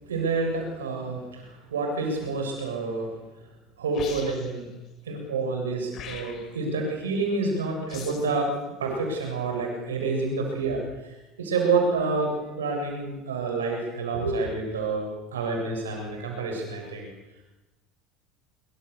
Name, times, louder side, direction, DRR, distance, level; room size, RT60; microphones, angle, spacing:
voice 1, 0.1-3.1 3.8-4.7 5.0-8.5 8.8-10.8 11.4-17.1, right 3 dB, 85° right, 2 dB, 7.5 m, -28 dB
sound 1, 3.9-4.6 5.9-6.6 7.9-8.4, left 6 dB, 50° left, 5.5 m, -41 dB
25.5 x 24.5 x 7.0 m, 1.1 s
hypercardioid pair, 75°, 0 cm